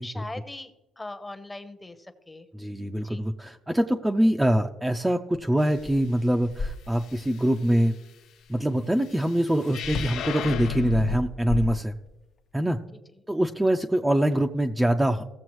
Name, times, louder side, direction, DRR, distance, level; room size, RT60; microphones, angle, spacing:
voice 1, 0.0-2.5 3.0-3.3 12.9-13.0, left 2 dB, 15° left, 9 dB, 0.9 m, -40 dB
voice 2, 2.5-7.9 8.5-11.9 12.5-12.8 13.3-15.2, right 1 dB, 5° right, 4 dB, 0.5 m, -24 dB
sound 1, 5.3-5.4 5.8-7.3 9.8-10.3 11.1-12.3, left 3 dB, 50° left, 0.8 m, -34 dB
sound 2, 9.7-11.2, left 6 dB, 75° left, 0.6 m, -31 dB
16.0 x 6.9 x 3.1 m, 0.99 s
cardioid pair, 105°, 0 cm